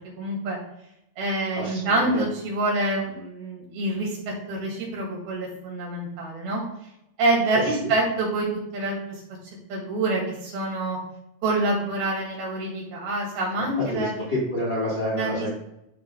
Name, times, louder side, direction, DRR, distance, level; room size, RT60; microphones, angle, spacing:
voice 1, 0.2-0.6 1.2-6.6 7.2-8.5 8.7-9.2 9.7-11.0 11.4-14.3 15.1-15.5, right 2 dB, 70° right, -3 dB, 4.0 m, -26 dB
voice 2, 1.5-2.2 7.5-7.6 13.6-15.5, left 1 dB, 50° left, -6 dB, 1.3 m, -28 dB
13.0 x 4.4 x 2.3 m, 0.83 s
omnidirectional pair, 4.6 m